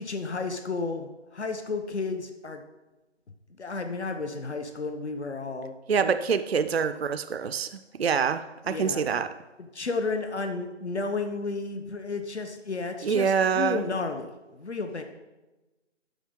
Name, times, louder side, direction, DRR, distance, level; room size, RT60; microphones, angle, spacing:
voice 1, 0.0-2.6 3.6-5.8 6.0-6.1 8.7-9.0 9.7-15.0, left 3 dB, 65° left, 6 dB, 0.9 m, -32 dB
voice 2, 5.9-9.3 13.0-13.9, right 6 dB, 60° right, 10 dB, 0.4 m, -26 dB
12.0 x 5.2 x 3.7 m, 1.1 s
figure-of-eight pair, 165°, 36 cm